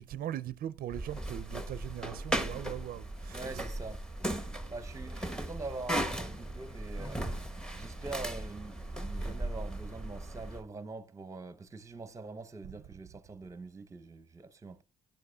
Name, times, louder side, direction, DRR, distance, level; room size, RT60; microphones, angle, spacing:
voice 1, 0.0-3.6, right 11 dB, 60° right, 0.5 m, -40 dB
sound 1, 0.9-10.6, right 1 dB, 5° left, 1.1 m, -37 dB
voice 2, 3.3-4.0 4.7-7.3 7.7-14.8, right 3 dB, 20° right, 0.8 m, -44 dB
16.5 x 10.5 x 2.3 m
cardioid pair, 110°, 17 cm